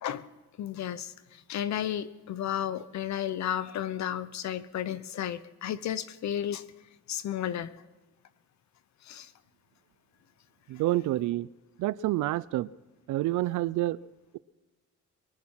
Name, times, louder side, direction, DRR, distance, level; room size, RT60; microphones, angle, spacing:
voice 1, 0.6-6.6 7.1-7.8 9.0-9.3, left 10 dB, 65° left, 15 dB, 0.9 m, -33 dB
voice 2, 10.7-11.5 11.8-12.7 13.1-14.0, right 16 dB, 85° right, 19 dB, 0.6 m, -28 dB
23.0 x 10.5 x 5.7 m, 1.2 s
cardioid pair, 90°, 30 cm